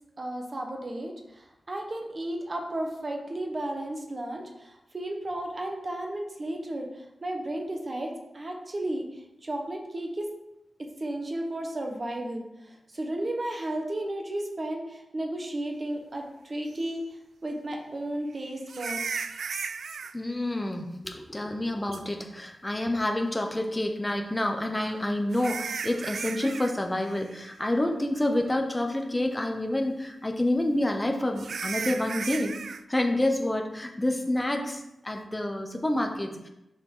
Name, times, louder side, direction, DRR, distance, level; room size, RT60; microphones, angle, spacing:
voice 1, 0.2-10.3 10.8-17.0 17.4-19.2, right 1 dB, 30° right, 2 dB, 1.0 m, -34 dB
sound 1, 16.8-16.9 18.7-20.1 21.9-22.0 24.6-26.7 27.0-27.4 27.8-27.9 28.5-28.6 31.4-32.8, right 5 dB, 75° right, 0.3 m, -35 dB
voice 2, 20.1-32.5 32.9-36.5, left 1 dB, 15° left, 3 dB, 0.7 m, -28 dB
6.4 x 5.1 x 3.8 m, 0.89 s
wide cardioid pair, 160°, 0 cm